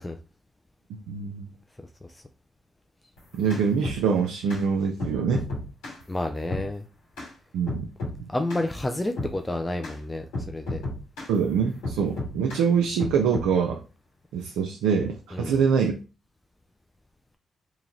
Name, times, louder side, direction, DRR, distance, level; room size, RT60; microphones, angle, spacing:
voice 1, 1.1-1.5 3.3-5.4 7.5-7.9 8.2-8.3 11.3-13.8 14.3-15.9, right 6 dB, 80° right, 0.4 m, -24 dB
sound 1, 3.2-4.0 4.5-4.6 5.0-6.0 6.5-6.7 7.2-7.3 7.7-8.2 8.5-8.7 9.2-9.4 9.8-10.0 10.3-11.3 11.8-12.6 13.0-13.5, left 2 dB, 85° left, 2.0 m, -33 dB
voice 2, 6.1-6.8 8.3-10.8 15.3-15.6, left 1 dB, 20° left, 0.5 m, -30 dB
2.9 x 2.9 x 3.8 m
hypercardioid pair, 45°, 0 cm